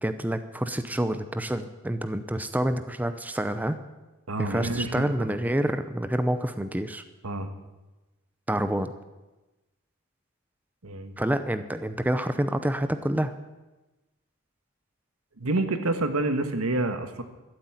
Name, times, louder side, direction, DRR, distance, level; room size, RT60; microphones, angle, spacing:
voice 1, 0.0-3.8 4.4-7.0 8.5-8.9 11.2-13.3, right 1 dB, 10° right, 10 dB, 0.6 m, -28 dB
voice 2, 4.3-5.4 7.2-7.5 10.8-11.1 15.4-17.2, right 2 dB, 85° right, 8 dB, 1.5 m, -28 dB
13.0 x 8.0 x 9.7 m, 1.1 s
head